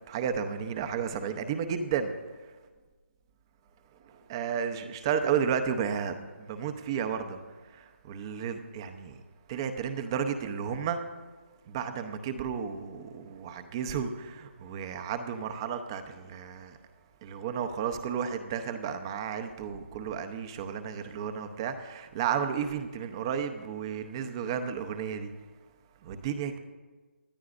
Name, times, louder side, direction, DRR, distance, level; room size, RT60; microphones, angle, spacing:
voice 1, 0.1-2.1 4.1-7.4 7.7-9.1 9.5-11.0 11.7-16.8 17.2-25.3 26.0-26.6, right 7 dB, 20° right, 8 dB, 0.8 m, -32 dB
26.5 x 10.5 x 2.6 m, 1.4 s
hypercardioid pair, 165°, 7 cm